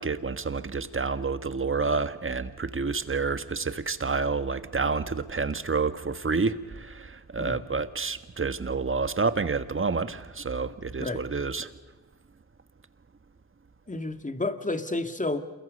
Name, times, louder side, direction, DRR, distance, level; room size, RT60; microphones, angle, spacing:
voice 1, 0.0-11.7, right 4 dB, 30° right, 11 dB, 1.6 m, -29 dB
voice 2, 13.9-15.4, left 2 dB, 20° left, 7 dB, 2.3 m, -30 dB
28.0 x 22.5 x 5.4 m, 1.2 s
supercardioid pair, 50°, 42 cm